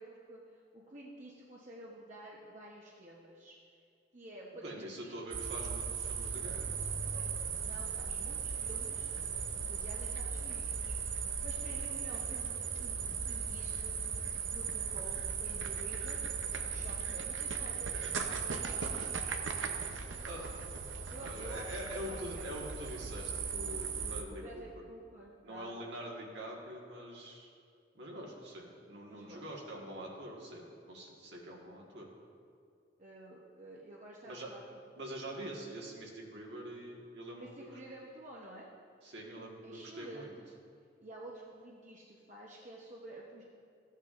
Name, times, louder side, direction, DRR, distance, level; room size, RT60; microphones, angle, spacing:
voice 1, 0.0-3.6 4.1-5.2 7.1-7.3 7.6-11.0 11.4-14.0 14.5-19.1 21.1-22.5 24.3-25.8 29.1-29.4 33.0-34.8 37.4-38.7 39.6-40.5 41.0-43.4, right 1 dB, 40° right, -4 dB, 0.8 m, -51 dB
voice 2, 4.6-6.8 20.2-20.5 21.2-24.6 25.4-27.5 27.9-32.1 34.3-34.5 35.0-37.7 39.0-40.4, right 1 dB, 70° right, -2 dB, 1.6 m, -45 dB
sound 1, 5.3-24.2, right 6 dB, 85° right, 0.7 m, -37 dB
14.0 x 8.3 x 2.5 m, 2.4 s
head